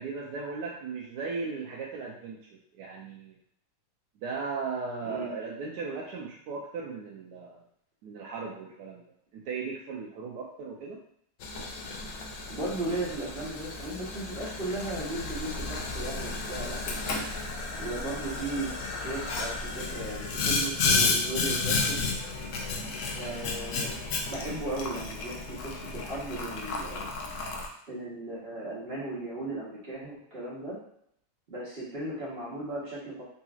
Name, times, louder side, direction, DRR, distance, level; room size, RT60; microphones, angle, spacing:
voice 1, 0.0-2.4 2.7-3.4 4.2-7.6 8.0-9.0 9.3-11.0, right 4 dB, 85° right, -3 dB, 1.2 m, -37 dB
Boiling, 11.4-27.7, left 3 dB, 70° left, 0.7 m, -32 dB
voice 2, 12.5-17.2 17.8-18.7 19.0-22.0 23.1-23.9 24.3-27.1 27.9-30.8 31.5-33.2, right 2 dB, 40° right, -7 dB, 1.1 m, -36 dB
3.9 x 2.8 x 2.3 m, 0.70 s
omnidirectional pair, 1.8 m